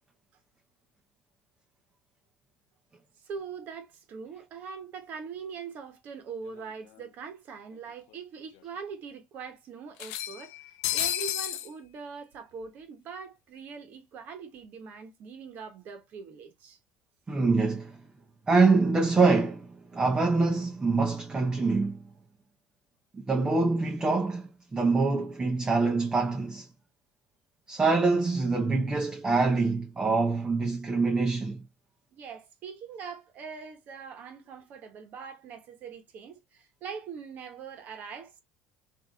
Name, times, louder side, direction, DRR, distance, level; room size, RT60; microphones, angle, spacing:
voice 1, 3.2-16.8 32.1-38.4, right 6 dB, 55° right, 1.0 m, -42 dB
sound 1, 6.6-6.7 7.0-7.1 8.1-8.2 8.6-8.7 10.0-11.7, left 13 dB, 75° left, 0.3 m, -31 dB
voice 2, 17.3-18.0 18.5-22.0 23.3-26.7 27.7-31.6, right 3 dB, 20° right, 0.7 m, -25 dB
3.5 x 2.6 x 2.3 m
hypercardioid pair, 75°, 4 cm